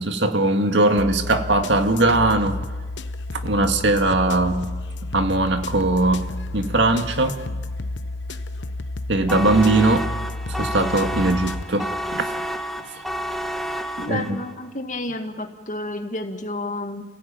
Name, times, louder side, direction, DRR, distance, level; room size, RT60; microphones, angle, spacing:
voice 1, 0.0-2.6 3.3-4.6 5.1-6.3 6.5-7.4 9.1-10.1 10.5-12.3 14.0-14.4, right 2 dB, 80° right, 6 dB, 2.0 m, -20 dB
sound 1, 1.0-11.6, left 2 dB, 90° left, 1.1 m, -31 dB
sound 2, 9.3-14.5, equal, ahead, 1.6 m, -30 dB
voice 2, 14.0-17.0, left 2 dB, 45° left, 5 dB, 2.1 m, -30 dB
29.0 x 16.5 x 9.1 m, 1.3 s
head